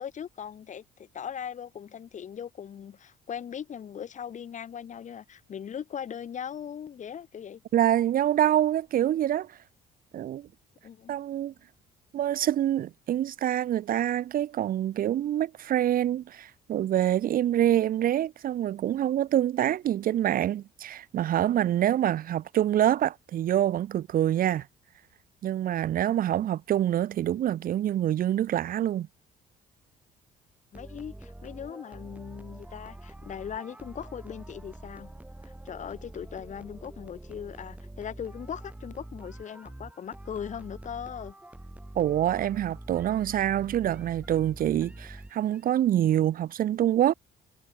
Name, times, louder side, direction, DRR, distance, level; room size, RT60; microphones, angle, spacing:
voice 1, 0.0-7.6 10.8-11.2 30.7-35.1 35.4-41.4, left 8 dB, 45° left, 5.8 m, -39 dB
voice 2, 7.7-9.5 10.1-10.5 11.1-11.5 12.1-24.7 25.4-29.1 41.9-47.1, right 11 dB, 55° right, 1.3 m, -26 dB
sound 1, 30.7-45.7, right 1 dB, 10° right, 3.9 m, -45 dB
cardioid pair, 110°, 17 cm